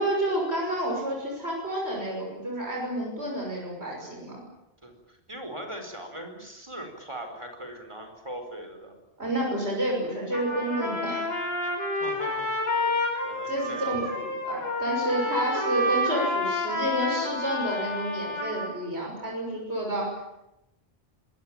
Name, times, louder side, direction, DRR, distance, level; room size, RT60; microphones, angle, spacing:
voice 1, 0.0-4.4 9.2-11.3 13.5-20.2, right 1 dB, 80° right, -1 dB, 6.6 m, -30 dB
voice 2, 4.8-8.9 11.9-12.7 13.2-14.0, right 1 dB, 25° right, 5 dB, 4.8 m, -40 dB
Trumpet, 10.3-18.7, left 1 dB, 70° left, 6.3 m, -29 dB
25.5 x 19.5 x 9.0 m, 0.90 s
omnidirectional pair, 1.1 m